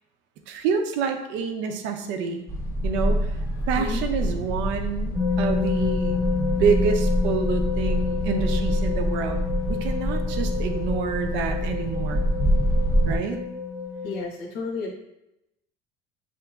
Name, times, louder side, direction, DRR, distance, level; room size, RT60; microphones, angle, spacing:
voice 1, 0.5-2.4 2.8-3.4 3.7-9.4 9.7-12.3 13.0-13.4, right 6 dB, 75° right, 6 dB, 0.6 m, -27 dB
sound 1, 2.5-13.2, equal, 15° left, 0.4 m, -26 dB
sound 2, 5.1-14.3, left 5 dB, 15° right, 0.9 m, -29 dB
voice 2, 6.2-6.6 14.0-14.9, left 3 dB, 90° left, -3 dB, 1.0 m, -33 dB
7.6 x 2.9 x 2.3 m, 0.87 s
cardioid pair, 165°, 19 cm